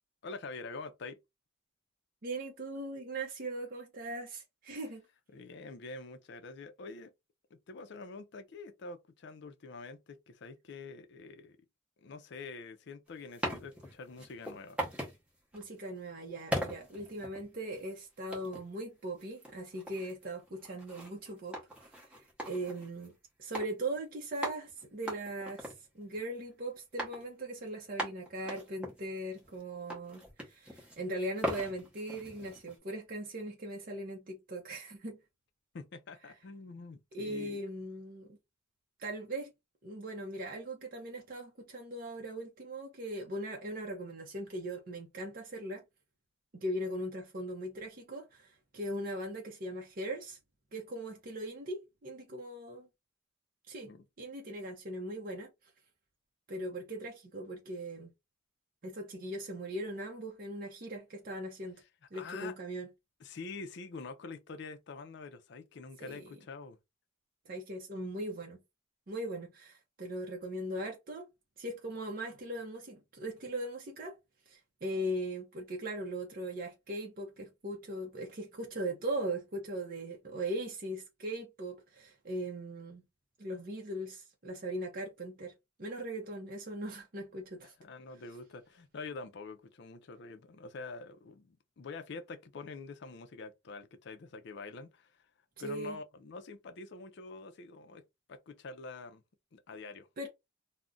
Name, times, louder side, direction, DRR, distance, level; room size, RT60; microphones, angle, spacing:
voice 1, 0.2-1.2 5.3-7.1 7.7-11.6 12.0-14.8 35.7-37.6 53.8-54.0 62.1-62.5 63.2-66.8 87.6-95.2 95.6-98.0 98.3-99.2 99.5-100.1, left 3 dB, 55° left, 0.4 m, -46 dB
voice 2, 2.2-5.0 15.5-23.1 23.4-35.2 37.1-38.4 39.0-39.5 39.8-45.8 46.5-50.4 50.7-52.9 53.7-53.9 54.2-55.5 56.5-58.1 58.8-61.8 62.1-62.9 66.0-66.2 67.5-68.6 69.1-71.3 71.6-74.2 74.5-83.0 83.4-85.5 85.8-87.7 95.6-96.0 100.2-100.3, right 1 dB, 45° right, 0.6 m, -39 dB
sound 1, 13.1-15.2 15.5-15.8 16.5-17.8 18.3-18.7 19.2-23.1 23.5-23.7 23.9-24.0 24.4-26.5 27.0-27.3 27.6-27.7 28.0-29.6 29.9-31.0 31.4-32.8, equal, 5° right, 0.8 m, -40 dB
2.4 x 2.1 x 3.7 m
head